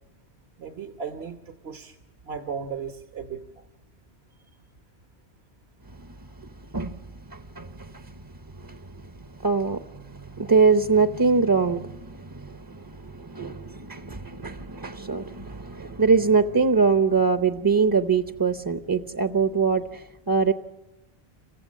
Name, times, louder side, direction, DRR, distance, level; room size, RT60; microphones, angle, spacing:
voice 1, 0.6-2.0 2.2-3.4, right 6 dB, 70° right, 6 dB, 1.4 m, -35 dB
voice 2, 6.4-7.0 7.3-8.1 8.5-9.1 9.4-20.5, right 5 dB, 25° right, 9 dB, 0.6 m, -24 dB
28.5 x 15.5 x 7.4 m, 1.0 s
omnidirectional pair, 1.1 m